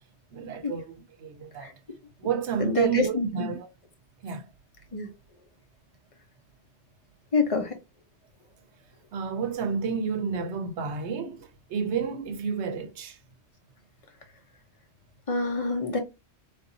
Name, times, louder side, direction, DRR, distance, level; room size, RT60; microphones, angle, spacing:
voice 1, 0.3-1.7 2.2-3.7 4.2-4.5 9.1-13.2, right 6 dB, 85° right, 1.0 m, -30 dB
voice 2, 2.6-3.5 4.9-5.1 7.3-7.7 15.3-16.0, left 3 dB, 35° left, 0.9 m, -26 dB
3.9 x 2.6 x 2.7 m
omnidirectional pair, 1.1 m